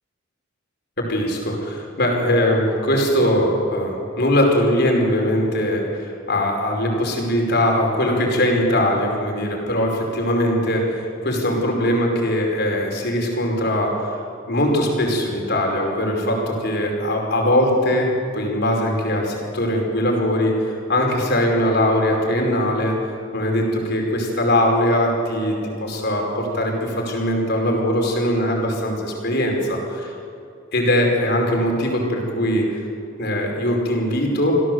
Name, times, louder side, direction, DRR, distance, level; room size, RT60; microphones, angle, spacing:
voice 1, 1.0-14.2 14.5-23.0 23.3-29.8 30.7-32.8 33.2-34.5, left 1 dB, 55° left, 0 dB, 5.1 m, -21 dB
27.0 x 16.0 x 8.0 m, 2.6 s
head